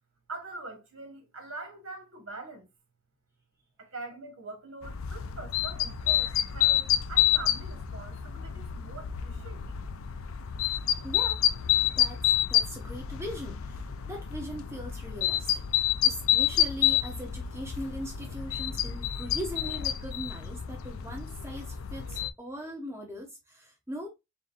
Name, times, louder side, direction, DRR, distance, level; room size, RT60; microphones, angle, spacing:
voice 1, 0.3-2.7 3.8-9.7, right 3 dB, 75° right, 1.6 m, -43 dB
sound 1, 4.8-22.3, left 11 dB, 75° left, 0.4 m, -29 dB
voice 2, 11.0-11.4 11.9-15.6 16.0-24.1, equal, 10° right, 0.7 m, -40 dB
3.9 x 3.8 x 2.5 m
head